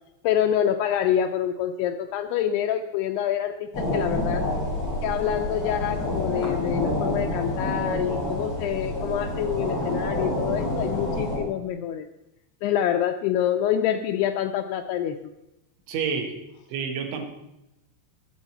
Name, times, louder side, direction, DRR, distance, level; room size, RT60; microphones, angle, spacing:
voice 1, 0.2-4.5 5.0-12.1 12.6-15.2, left 10 dB, 85° left, 6 dB, 2.3 m, -26 dB
sound 1, 3.7-11.4, left 1 dB, 35° left, 6.2 m, -28 dB
voice 2, 15.9-16.4 16.7-17.2, right 6 dB, 85° right, 3 dB, 3.9 m, -28 dB
21.0 x 7.6 x 4.3 m, 0.89 s
omnidirectional pair, 5.2 m